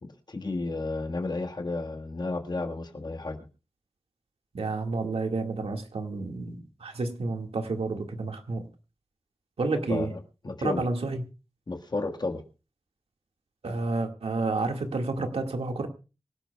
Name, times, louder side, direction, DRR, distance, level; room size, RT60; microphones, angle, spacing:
voice 1, 0.0-3.4 9.9-10.2 10.4-10.8 11.7-12.4, left 3 dB, 45° left, 4 dB, 1.5 m, -32 dB
voice 2, 4.5-8.7 9.6-10.1 10.6-11.2 13.6-15.9, right 3 dB, 80° right, 4 dB, 1.9 m, -30 dB
25.0 x 12.0 x 2.3 m, 0.31 s
wide cardioid pair, 80°, 10 cm